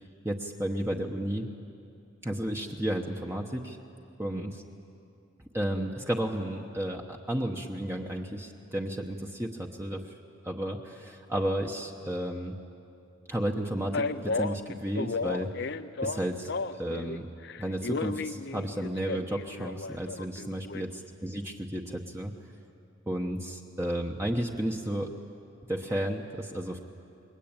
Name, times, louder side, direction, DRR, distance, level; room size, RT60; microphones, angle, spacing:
voice 1, 0.2-1.5 2.2-3.8 4.2-4.6 5.5-10.0 10.4-12.5 13.3-15.5 16.0-17.3 17.6-22.3 23.1-25.1 25.7-26.8, right 1 dB, 15° right, 1 dB, 1.0 m, -32 dB
Male speech man speaking, 13.9-17.2 17.4-20.8, left 3 dB, 55° left, 0.6 m, -33 dB
29.0 x 21.5 x 8.9 m, 2.7 s
head